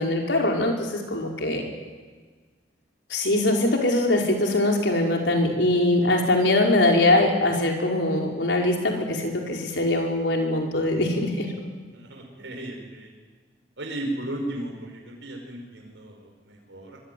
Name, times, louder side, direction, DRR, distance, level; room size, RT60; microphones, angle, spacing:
voice 1, 0.0-1.6 3.1-11.5, left 1 dB, 75° left, 1 dB, 5.2 m, -22 dB
voice 2, 11.9-13.1 13.8-17.0, right 1 dB, 80° right, 1 dB, 5.3 m, -35 dB
25.0 x 23.0 x 9.5 m, 1.5 s
head